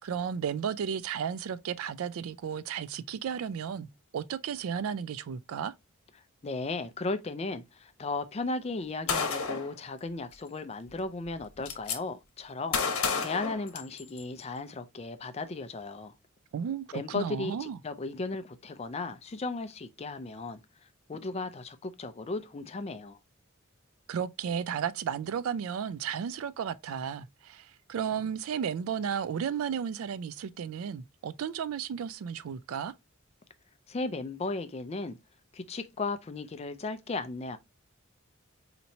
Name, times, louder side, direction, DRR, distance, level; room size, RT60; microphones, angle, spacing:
voice 1, 0.0-3.9 4.1-5.7 16.5-17.8 24.1-32.9, right 7 dB, 75° right, 0.3 m, -33 dB
voice 2, 6.4-16.1 16.9-23.2 33.9-35.2 35.5-37.6, left 3 dB, 30° left, 0.4 m, -36 dB
Gunshot gunfire, 9.1-9.7 10.9-11.0 11.3-12.0 12.7-14.2, left 5 dB, 85° left, 0.9 m, -30 dB
4.2 x 2.9 x 2.7 m
head